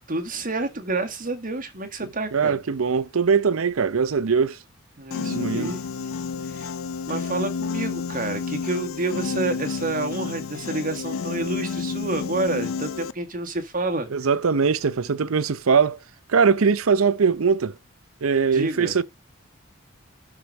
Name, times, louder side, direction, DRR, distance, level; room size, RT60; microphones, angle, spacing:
voice 1, 0.1-2.6 5.0-5.8 6.4-6.7 7.1-14.1 18.5-19.0, right 2 dB, 40° right, 1.7 m, -29 dB
voice 2, 2.3-4.6 5.3-5.8 14.1-16.0 16.3-17.7 18.2-19.0, right 5 dB, 85° right, 0.6 m, -21 dB
Piano, 5.1-13.1, left 5 dB, 75° left, 0.5 m, -30 dB
12.0 x 4.8 x 4.0 m
head